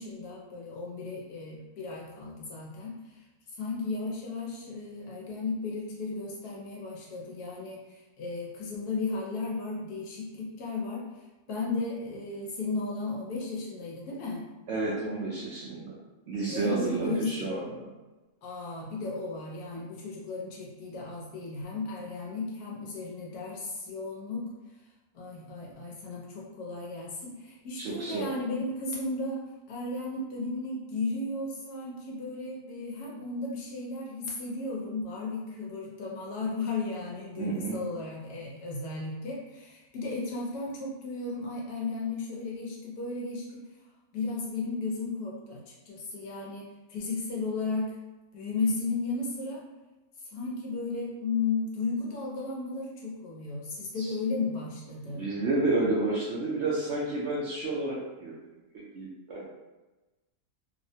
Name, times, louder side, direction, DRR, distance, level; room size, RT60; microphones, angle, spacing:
voice 1, 0.0-2.9 3.6-11.0 11.5-14.4 16.5-17.5 18.4-24.4 25.1-29.4 29.7-43.6 44.1-47.9 48.3-49.6 50.2-55.3, left 3 dB, 85° left, -3 dB, 1.3 m, -34 dB
voice 2, 14.7-16.0 16.3-17.9 27.8-28.3 37.4-37.8 54.0-54.1 55.1-58.4 58.7-59.5, right 2 dB, 65° right, -5 dB, 0.7 m, -30 dB
3.2 x 2.1 x 2.6 m, 1.1 s
omnidirectional pair, 1.6 m